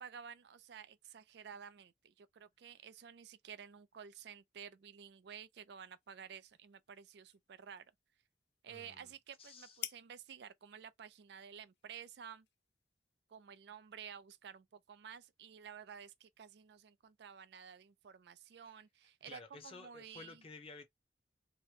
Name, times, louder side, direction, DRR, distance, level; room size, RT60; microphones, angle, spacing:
voice 1, 0.0-7.8 8.6-12.5 13.3-20.4, right 7 dB, 65° right, 0.4 m, -52 dB
sound 1, 5.5-13.2, left 12 dB, 65° left, 0.4 m, -55 dB
voice 2, 8.7-9.1 9.4-9.8 18.6-18.7 19.2-20.9, left 3 dB, 35° left, 0.8 m, -53 dB
2.8 x 2.1 x 3.2 m
head